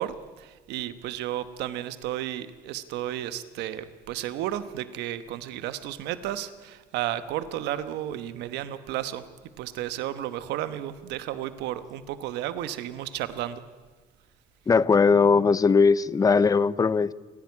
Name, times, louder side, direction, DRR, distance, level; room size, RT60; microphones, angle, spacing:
voice 1, 0.0-9.2 9.6-13.6, right 12 dB, 90° right, 12 dB, 1.1 m, -33 dB
voice 2, 14.7-17.1, left 5 dB, 20° left, 18 dB, 0.6 m, -19 dB
28.5 x 11.0 x 9.6 m, 1.3 s
cardioid pair, 110°, 17 cm